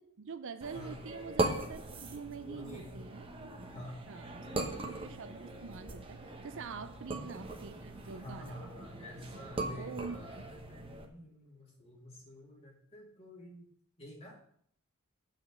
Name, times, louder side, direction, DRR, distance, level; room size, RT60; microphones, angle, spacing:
voice 1, 0.0-3.3 4.1-8.7 9.6-10.5, right 5 dB, 60° right, 11 dB, 0.5 m, -45 dB
sound 1, 0.6-11.1, right 2 dB, 25° right, 1.0 m, -40 dB
voice 2, 0.7-1.0 2.5-3.1 3.7-4.9 6.8-7.0 8.1-13.7 14.0-14.4, left 1 dB, 25° left, -2 dB, 2.2 m, -50 dB
7.8 x 4.5 x 7.1 m, 0.62 s
head